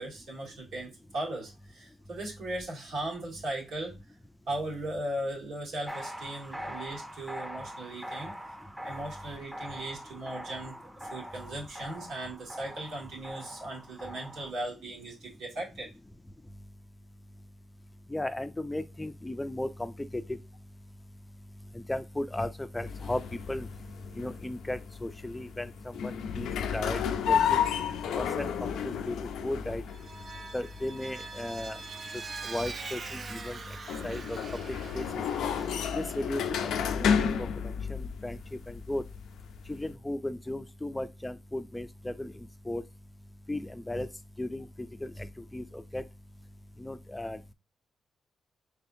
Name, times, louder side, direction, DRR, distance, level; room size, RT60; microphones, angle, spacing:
voice 1, 0.0-3.9 4.5-8.4 8.8-15.9, right 1 dB, 85° right, 1.7 m, -38 dB
sound 1, 5.9-14.5, equal, 10° right, 0.7 m, -43 dB
voice 2, 18.1-20.2 21.9-23.2 23.5-23.7 24.2-25.7 26.0-27.0 27.2-27.6 28.1-29.1 29.4-29.8 30.5-31.8 32.4-33.6 34.0-34.4 34.7-35.2 35.9-36.7 36.9-37.5 37.9-38.4 38.7-39.0 39.7-42.3 42.7-42.8 43.5-44.1 44.4-44.7 45.0-45.1 45.5-45.6 45.9-46.0 46.8-47.5, left 1 dB, 15° left, 0.4 m, -35 dB
sound 2, 22.8-39.9, left 7 dB, 85° left, 0.4 m, -32 dB
Vehicle, 29.9-36.3, right 4 dB, 50° right, 0.5 m, -43 dB
4.2 x 3.4 x 2.6 m
cardioid pair, 70°, 0 cm